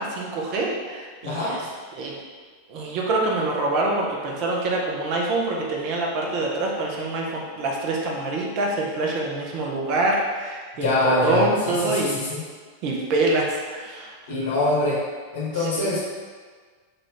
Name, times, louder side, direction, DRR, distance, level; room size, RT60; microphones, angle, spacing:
voice 1, 0.0-1.7 1.9-2.2 2.7-12.2 12.8-14.1 15.5-15.9, right 2 dB, 40° right, -1 dB, 0.6 m, -25 dB
voice 2, 10.8-12.4 14.3-15.0 15.3-16.0, left 2 dB, 60° left, -5 dB, 1.0 m, -24 dB
3.8 x 2.4 x 3.3 m, 1.5 s
figure-of-eight pair, 90°, 0 cm